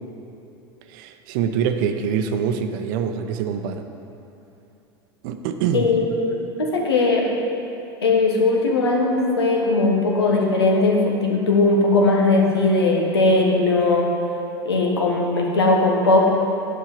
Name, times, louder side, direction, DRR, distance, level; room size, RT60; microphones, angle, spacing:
voice 1, 0.9-3.8 5.2-5.9, right 7 dB, 55° right, 7 dB, 0.7 m, -24 dB
voice 2, 5.7-7.3 8.0-14.1 14.6-16.3, left 2 dB, 75° left, 0 dB, 1.3 m, -19 dB
9.9 x 5.4 x 5.3 m, 2.9 s
figure-of-eight pair, 80°, 13 cm